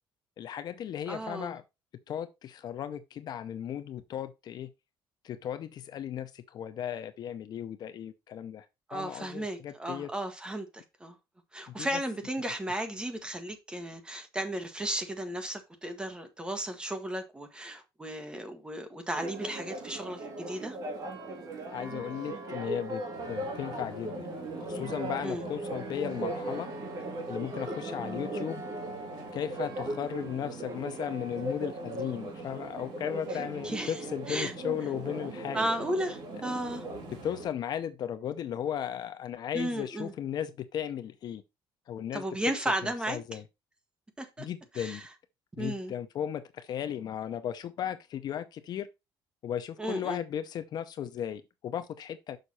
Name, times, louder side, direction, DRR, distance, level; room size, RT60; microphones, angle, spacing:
voice 1, 0.4-1.6 2.1-4.7 5.2-8.7 8.9-10.1 11.7-12.0 21.7-24.3 24.7-26.7 27.3-28.6 29.3-35.7 37.2-41.4 41.9-42.2 42.8-43.4 44.4-45.1 45.6-48.9 49.4-52.4, left 9 dB, 50° left, 0.7 m, -36 dB
voice 2, 1.1-1.5 8.9-11.2 11.5-20.8 25.2-25.5 33.6-34.0 34.3-34.5 35.5-36.8 39.5-40.1 42.1-43.4 44.2-44.5 44.7-45.0 45.6-45.9 49.8-50.2, right 1 dB, 10° right, 1.3 m, -34 dB
Church bell, 19.1-37.5, right 2 dB, 40° right, 2.7 m, -38 dB
sound 1, 23.1-37.5, left 1 dB, 60° right, 4.1 m, -50 dB
6.6 x 5.5 x 4.2 m
cardioid pair, 155°, 9 cm